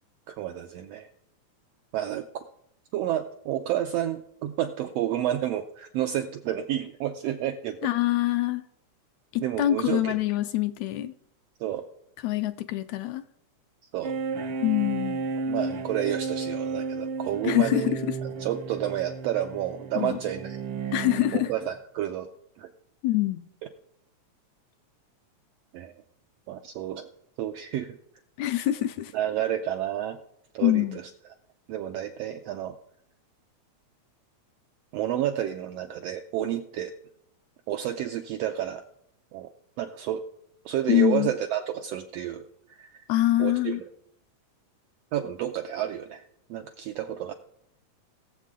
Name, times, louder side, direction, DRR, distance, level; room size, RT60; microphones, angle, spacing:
voice 1, 0.3-1.1 1.9-2.4 2.9-7.8 9.4-10.1 11.6-11.8 13.9-14.1 15.5-18.0 18.4-20.9 21.3-22.3 22.6-22.7 25.7-25.9 26.5-27.1 27.4-28.0 29.1-30.2 30.5-31.0 31.7-32.7 34.9-36.9 37.7-38.8 39.3-39.5 39.8-40.2 40.6-42.5 42.8-43.0 43.4-43.8 45.1-47.3, right 11 dB, 85° right, 1.4 m, -30 dB
voice 2, 7.8-8.6 9.3-11.1 12.2-13.2 14.6-15.2 17.4-18.1 19.9-20.2 20.9-21.5 23.0-23.5 28.4-29.1 30.6-31.0 40.9-41.3 43.1-43.8, left 14 dB, 80° left, 1.7 m, -25 dB
sound 1, 14.0-21.6, right 4 dB, 70° right, 1.4 m, -33 dB
21.5 x 7.4 x 3.7 m
omnidirectional pair, 3.5 m